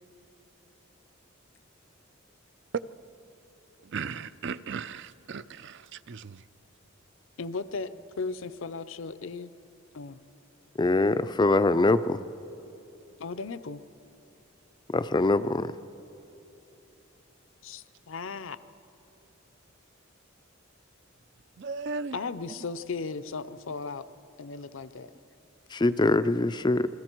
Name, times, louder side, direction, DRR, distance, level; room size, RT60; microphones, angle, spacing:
voice 1, 3.8-6.4 21.6-22.2, right 5 dB, 55° right, 0.5 m, -37 dB
voice 2, 7.4-9.5 9.9-10.2 13.2-13.8 17.6-18.6 22.1-24.0 24.4-25.1, left 4 dB, 65° left, 0.6 m, -36 dB
voice 3, 10.8-12.2 14.9-15.7 25.7-26.9, left 2 dB, 20° left, 0.4 m, -23 dB
28.0 x 22.0 x 4.5 m
head